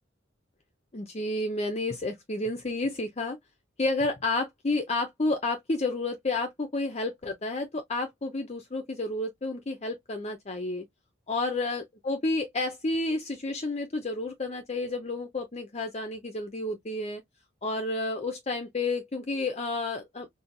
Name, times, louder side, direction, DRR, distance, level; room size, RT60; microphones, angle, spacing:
voice 1, 0.9-3.4 3.8-10.8 11.3-17.2 17.6-20.3, left 2 dB, 35° left, 0.6 m, -30 dB
4.2 x 2.7 x 2.6 m
head